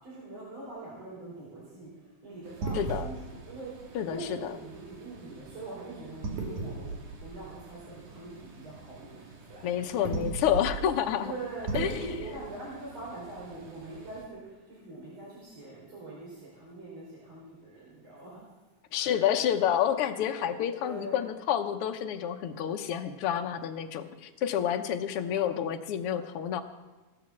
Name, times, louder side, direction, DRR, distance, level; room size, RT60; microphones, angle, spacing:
voice 1, 0.0-9.2 9.5-9.7 11.2-18.4 18.9-19.1 20.8-21.2, right 2 dB, 55° right, -6 dB, 5.7 m, -43 dB
sound 1, 2.4-14.2, right 4 dB, 80° right, 3.7 m, -40 dB
voice 2, 2.7-3.1 3.9-4.5 9.6-11.3 11.7-12.0 18.9-26.6, left 9 dB, 65° left, 5 dB, 1.5 m, -29 dB
17.5 x 8.8 x 7.3 m, 1.2 s
omnidirectional pair, 3.4 m